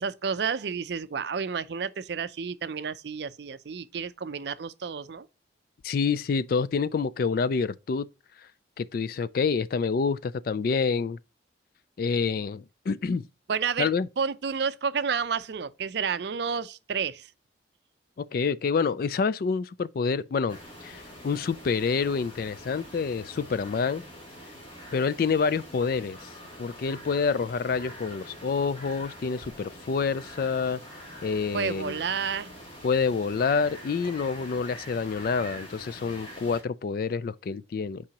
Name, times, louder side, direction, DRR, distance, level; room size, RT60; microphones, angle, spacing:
voice 1, 0.0-5.3 13.5-13.9 14.2-17.3 31.5-32.6, right 6 dB, 60° right, 0.4 m, -30 dB
voice 2, 5.8-8.1 8.8-11.2 12.0-13.2 13.8-14.1 18.2-24.0 24.9-26.3 26.6-30.8 31.2-32.0 32.8-38.0, left 5 dB, 50° left, 0.3 m, -27 dB
sound 1, 20.5-36.6, equal, 30° left, 2.6 m, -45 dB
8.7 x 4.8 x 2.9 m
head